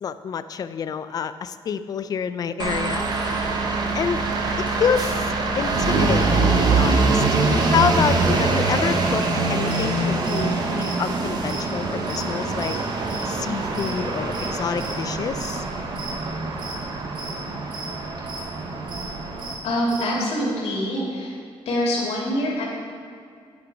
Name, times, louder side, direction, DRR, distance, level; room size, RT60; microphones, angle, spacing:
voice 1, 0.0-3.6 3.9-4.3 4.6-5.3 5.6-7.2 7.7-12.8 13.3-15.6, left 7 dB, 40° left, 12 dB, 0.3 m, -27 dB
sound 1, 2.6-19.5, right 3 dB, 40° right, 0.9 m, -24 dB
sound 2, 9.7-9.9 10.1-14.5 14.7-15.1 15.4-15.7 15.9-16.3 16.6-17.4 17.7-17.9 18.2-18.5 18.9-19.1 19.3-20.1, right 3 dB, 55° right, 1.8 m, -37 dB
voice 2, 19.6-21.3 21.7-22.6, equal, 85° left, -4 dB, 2.5 m, -24 dB
9.9 x 6.2 x 4.7 m, 2.3 s
wide cardioid pair, 175°, 10 cm